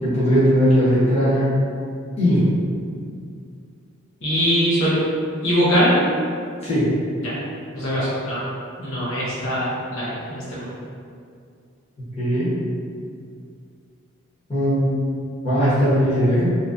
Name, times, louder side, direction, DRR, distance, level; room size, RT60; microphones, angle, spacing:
voice 1, 0.0-1.6 2.2-2.5 6.6-6.9 12.2-12.5 14.5-15.0 15.4-16.5, equal, 30° left, -12 dB, 1.1 m, -18 dB
voice 2, 4.2-5.0 5.4-6.0 7.2-7.3 7.7-8.4 8.8-10.7, equal, 70° left, -10 dB, 0.9 m, -22 dB
2.9 x 2.7 x 2.4 m, 2.3 s
head